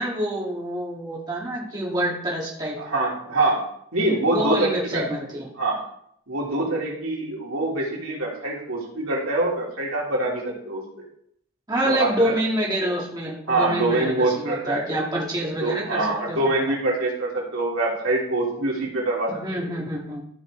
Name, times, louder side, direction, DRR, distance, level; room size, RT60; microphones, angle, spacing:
voice 1, 0.0-2.8 4.3-5.5 11.7-16.6 19.4-20.2, equal, 20° right, -4 dB, 1.8 m, -27 dB
voice 2, 2.8-3.6 3.9-5.0 5.6-5.8 6.3-10.8 11.8-12.4 13.5-14.8 15.6-19.7, right 2 dB, 75° right, -3 dB, 3.1 m, -24 dB
14.0 x 5.3 x 3.8 m, 0.69 s
head